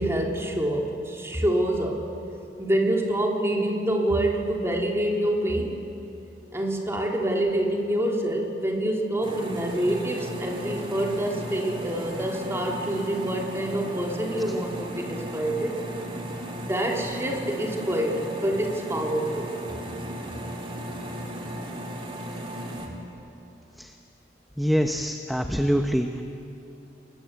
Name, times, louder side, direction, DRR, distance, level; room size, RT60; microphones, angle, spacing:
voice 1, 0.0-2.0 2.6-5.8 6.5-15.8 16.6-19.5, right 1 dB, 15° right, 0 dB, 3.3 m, -26 dB
sound 1, 9.2-22.9, equal, 30° right, 3.5 m, -36 dB
voice 2, 24.6-26.1, equal, ahead, 4 dB, 0.9 m, -24 dB
28.5 x 21.5 x 8.3 m, 2.8 s
head